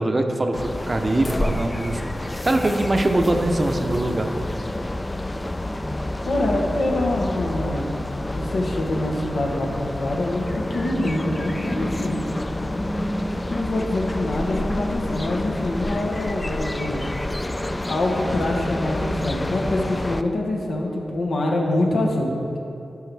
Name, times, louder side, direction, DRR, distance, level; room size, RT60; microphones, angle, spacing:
voice 1, 0.0-4.3, right 2 dB, 40° right, 5 dB, 0.6 m, -23 dB
sound 1, 0.5-20.2, left 1 dB, 25° left, 0.4 m, -28 dB
voice 2, 6.2-7.9 8.3-12.2 12.6-12.7 13.5-17.1 17.9-22.6, left 1 dB, 85° left, -1 dB, 1.1 m, -25 dB
12.0 x 4.7 x 3.4 m, 2.7 s
cardioid pair, 60°, 0 cm